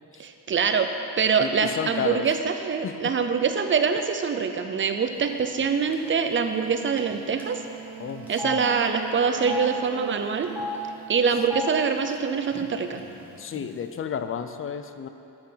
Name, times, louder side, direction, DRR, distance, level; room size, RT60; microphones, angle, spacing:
voice 1, 0.2-0.9 1.2-7.6 8.3-10.5 11.1-13.0, right 6 dB, 30° right, 7 dB, 0.5 m, -24 dB
voice 2, 1.4-2.3 2.8-3.2 8.0-8.6 13.4-15.1, left 7 dB, 35° left, 9 dB, 0.4 m, -32 dB
Telephone, 5.5-5.7 5.9-6.1 7.0-7.1 7.4-7.5 8.3-8.6 9.3-9.7 10.4-10.8 11.4-11.7 12.5-12.6 12.9-13.6, left 4 dB, 5° right, 1.0 m, -33 dB
Wind instrument woodwind instrument, 7.3-11.5, right 10 dB, 80° right, 0.6 m, -40 dB
8.7 x 8.0 x 5.7 m, 2.8 s
wide cardioid pair, 165°, 41 cm